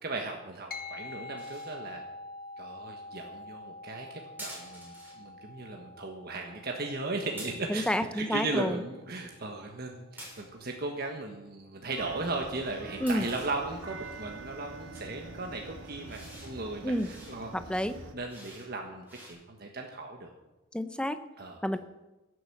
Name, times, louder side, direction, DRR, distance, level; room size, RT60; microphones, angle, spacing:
voice 1, 0.0-2.0 2.6-17.5 18.1-20.3 21.4-21.8, right 2 dB, 50° right, 2 dB, 1.4 m, -37 dB
sound 1, 0.7-10.4, left 2 dB, 50° left, 1.1 m, -47 dB
sound 2, 1.4-1.8 4.4-5.2 7.4-7.9 9.0-9.4 10.2-10.7 11.8-13.5 14.0-14.4 14.9-15.1 15.8-16.5 16.9-17.4 17.7-18.7 19.0-19.3, right 1 dB, 10° right, 6.7 m, -48 dB
voice 2, 7.7-8.8 13.0-13.3 16.8-17.1 17.5-17.9 20.7-21.2 21.6-21.8, equal, 5° left, 10 dB, 0.7 m, -29 dB
sound 3, 12.0-18.1, right 3 dB, 85° right, 1.7 m, -45 dB
16.5 x 8.1 x 7.3 m, 1.1 s
head